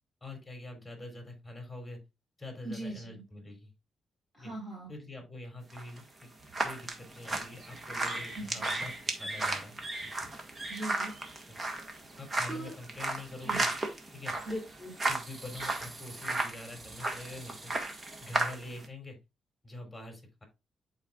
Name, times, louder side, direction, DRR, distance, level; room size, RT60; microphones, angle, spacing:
voice 1, 0.2-2.0 2.4-3.7 4.4-4.5 4.9-6.3 6.6-8.9 9.2-10.3 11.5-11.6 12.2-13.7 14.1-14.3 15.1-17.7 18.2-19.2 19.6-20.4, left 2 dB, 10° left, 2 dB, 3.6 m, -45 dB
voice 2, 2.6-3.2 4.3-4.9 8.3-8.5 10.7-11.1 11.5-11.7 12.5-12.7 13.4-13.6 14.4-15.0, right 1 dB, 10° right, -5 dB, 4.7 m, -39 dB
sound 1, 5.7-18.9, right 2 dB, 30° right, 1.5 m, -35 dB
11.0 x 4.3 x 2.4 m, 0.24 s
cardioid pair, 90°, 0 cm